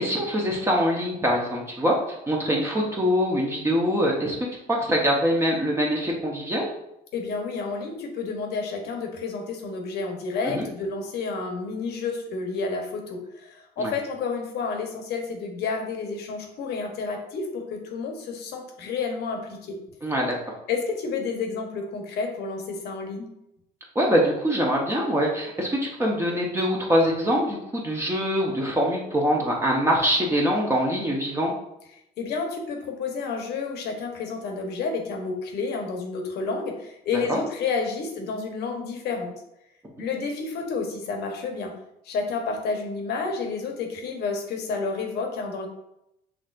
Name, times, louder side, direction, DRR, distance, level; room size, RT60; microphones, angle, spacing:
voice 1, 0.0-6.7 10.4-10.7 13.8-13.9 20.0-20.3 23.9-31.5 37.3-37.4, equal, 15° right, -2 dB, 0.9 m, -24 dB
voice 2, 7.1-19.8 20.7-23.3 32.2-39.3 40.0-41.7 42.0-45.7, left 4 dB, 75° left, 3 dB, 1.0 m, -30 dB
6.1 x 3.3 x 2.5 m, 0.84 s
cardioid pair, 110°, 17 cm